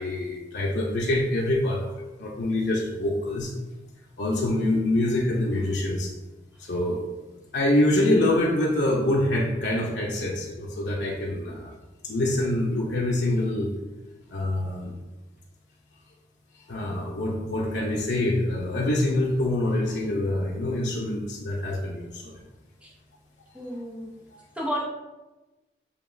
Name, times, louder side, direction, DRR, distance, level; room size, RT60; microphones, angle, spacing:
voice 1, 0.0-3.5 4.2-6.1 6.6-7.0 7.5-11.7 12.0-13.7 14.3-14.9 16.7-22.4, left 1 dB, 80° left, -4 dB, 0.7 m, -25 dB
voice 2, 23.5-24.1 24.6-24.9, equal, 5° right, -4 dB, 0.8 m, -31 dB
6.7 x 2.9 x 2.6 m, 1.1 s
head